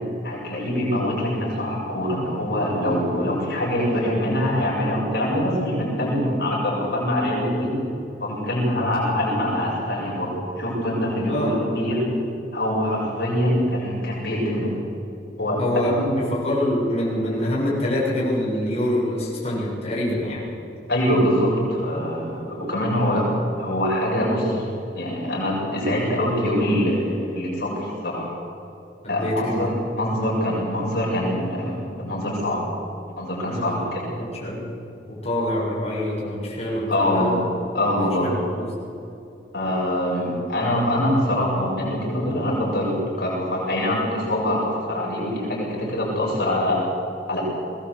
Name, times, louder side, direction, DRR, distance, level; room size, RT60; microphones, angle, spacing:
voice 1, 0.2-7.7 8.2-12.0 12.5-14.7 15.4-15.6 16.0-16.1 20.9-23.3 23.6-24.6 24.9-28.3 29.1-29.7 30.0-32.6 33.2-34.0 36.9-37.3 37.7-38.3 39.5-46.8 47.3-47.4, left 1 dB, 65° left, -4 dB, 7.4 m, -24 dB
voice 2, 15.6-20.5 29.0-29.7 33.4-33.8 34.2-34.7 35.1-37.5 38.2-38.7, left 1 dB, 40° left, -7 dB, 7.3 m, -25 dB
22.5 x 18.5 x 8.2 m, 2.6 s
head